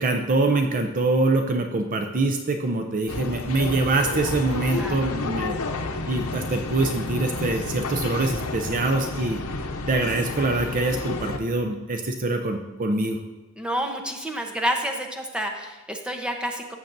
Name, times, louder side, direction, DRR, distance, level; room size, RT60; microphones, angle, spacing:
voice 1, 0.0-5.6 6.1-13.2, right 2 dB, 40° right, 5 dB, 0.5 m, -24 dB
sound 1, 3.1-11.4, left 3 dB, 85° left, 0.8 m, -31 dB
voice 2, 13.6-16.8, equal, 5° right, 3 dB, 0.8 m, -29 dB
14.5 x 7.1 x 2.6 m, 1.2 s
head